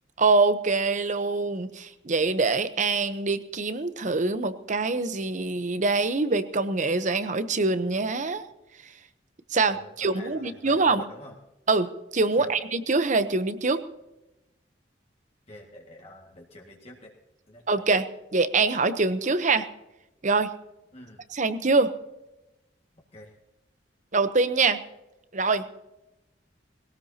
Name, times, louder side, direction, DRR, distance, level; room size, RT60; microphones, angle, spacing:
voice 1, 0.2-8.4 9.5-11.0 11.7-13.8 17.7-18.1 18.3-19.7 20.2-20.5 21.3-21.9 24.1-24.8 25.3-25.7, right 3 dB, 40° right, 11 dB, 0.9 m, -24 dB
voice 2, 9.6-11.4 12.3-12.6 15.5-17.2 17.5-17.9 20.9-21.3 23.1-23.4, left 1 dB, 35° left, -1 dB, 2.0 m, -46 dB
20.5 x 18.0 x 2.9 m, 0.94 s
head